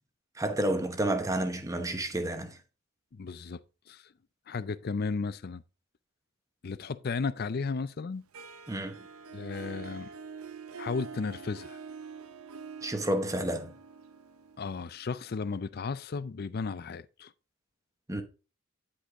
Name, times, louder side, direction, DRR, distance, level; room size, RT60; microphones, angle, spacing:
voice 1, 0.4-2.6 8.7-9.0 12.8-13.7 18.1-18.2, right 1 dB, 15° right, 0.9 m, -30 dB
voice 2, 3.1-3.6 3.9-4.0 4.5-5.6 6.6-8.2 9.3-10.1 10.8-11.8 14.6-17.3, left 4 dB, 45° left, 0.4 m, -34 dB
Harp, 8.3-15.2, right 5 dB, 75° right, 0.7 m, -45 dB
9.8 x 5.2 x 3.7 m
head